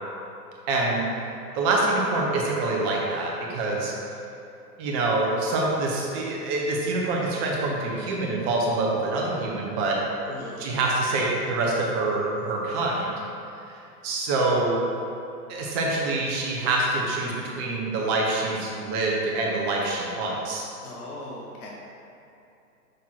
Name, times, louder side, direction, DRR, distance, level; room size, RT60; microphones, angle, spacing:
voice 1, 0.7-1.0 1.5-3.9 4.8-10.0 10.6-13.1 14.0-14.8 15.5-20.7, right 2 dB, 15° right, -2 dB, 0.4 m, -25 dB
voice 2, 10.3-10.6 20.8-21.7, left 2 dB, 65° left, -3 dB, 1.3 m, -39 dB
6.2 x 3.6 x 4.3 m, 2.7 s
hypercardioid pair, 125°, 48 cm